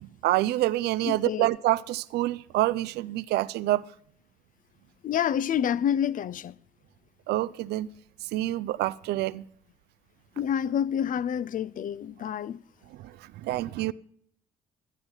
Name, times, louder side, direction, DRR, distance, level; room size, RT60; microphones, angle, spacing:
voice 1, 0.0-3.8 7.3-7.9 8.3-9.4 13.0-13.1 13.4-13.9, right 16 dB, 60° right, 0.4 m, -27 dB
voice 2, 1.0-1.5 5.0-6.5 10.4-12.6, left 9 dB, 45° left, 0.5 m, -28 dB
12.5 x 10.0 x 5.6 m
hypercardioid pair, 50°, 19 cm